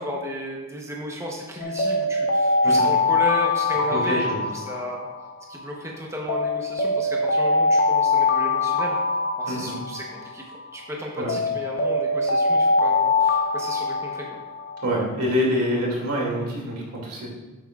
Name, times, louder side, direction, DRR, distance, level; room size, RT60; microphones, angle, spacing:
voice 1, 0.0-5.1 5.5-9.0 9.4-14.4, equal, 15° right, -1 dB, 0.9 m, -34 dB
Alarm, 1.6-5.7 6.3-10.7 11.3-15.1, left 3 dB, 45° left, 0.6 m, -23 dB
voice 2, 3.9-4.4 9.5-9.7 11.2-11.3 14.8-17.3, equal, 90° right, -2 dB, 2.4 m, -26 dB
9.6 x 7.7 x 2.4 m, 1.2 s
head